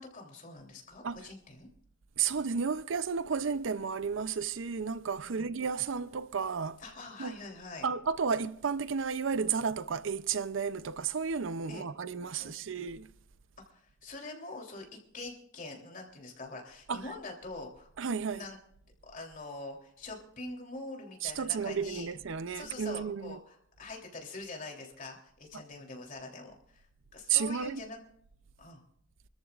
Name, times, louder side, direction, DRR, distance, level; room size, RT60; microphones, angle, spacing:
voice 1, 0.0-1.7 5.3-5.5 6.8-7.9 11.7-11.9 12.4-12.5 13.7-14.8 15.1-17.9 18.3-18.6 19.0-22.1 22.5-26.8 27.1-28.0 28.6-28.8, left 2 dB, 45° left, 3.2 m, -44 dB
voice 2, 2.2-6.8 7.2-7.3 7.8-13.1 16.9-17.0 18.0-18.5 21.2-23.4 27.3-27.8, right 6 dB, 75° right, 0.5 m, -32 dB
27.5 x 14.0 x 2.4 m
head